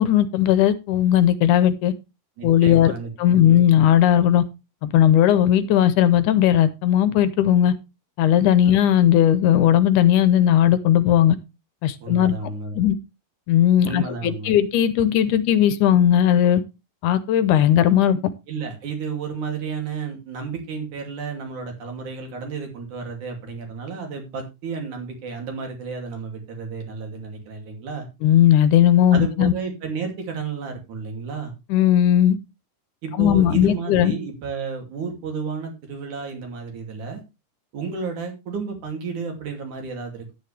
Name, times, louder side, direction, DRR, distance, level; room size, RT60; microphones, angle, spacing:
voice 1, 0.0-1.9 2.4-2.9 3.2-4.4 4.8-7.7 8.2-11.4 11.8-12.4 12.7-13.0 13.5-16.6 17.0-18.2 28.2-29.5 31.7-32.4 33.2-34.1, left 11 dB, 75° left, 14 dB, 2.2 m, -17 dB
voice 2, 2.4-3.7 8.6-8.7 12.0-12.8 13.8-14.6 18.5-28.1 29.1-31.5 33.0-37.2 37.7-40.4, right 5 dB, 65° right, 3 dB, 4.1 m, -32 dB
11.5 x 9.6 x 3.3 m, 0.26 s
omnidirectional pair, 3.8 m